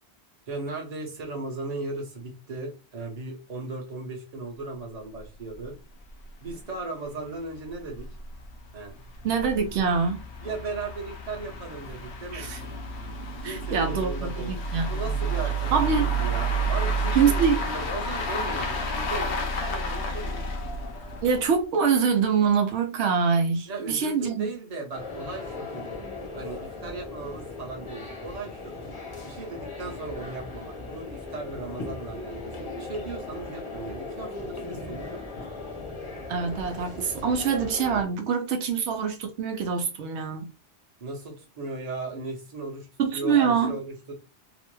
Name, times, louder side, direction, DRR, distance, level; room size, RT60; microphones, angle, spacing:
voice 1, 0.5-5.8 6.4-8.1 8.7-9.0 10.4-12.8 13.4-14.6 14.9-15.8 16.2-20.5 23.7-25.9 26.3-28.7 29.2-35.7 41.0-42.9 43.1-44.1, right 3 dB, 40° right, 0.9 m, -37 dB
sound 1, 5.2-5.3 5.5-5.6 6.1-6.2 6.5-6.6 7.2-21.6, right 2 dB, 80° left, 0.9 m, -30 dB
voice 2, 9.2-10.2 12.3-12.6 13.4-15.1 15.7-16.1 17.1-17.6 21.2-24.5 36.3-40.5 43.0-43.8, right 6 dB, 85° right, 0.9 m, -25 dB
sound 2, 24.9-38.0, left 3 dB, 30° left, 0.7 m, -38 dB
2.9 x 2.1 x 3.1 m
omnidirectional pair, 1.1 m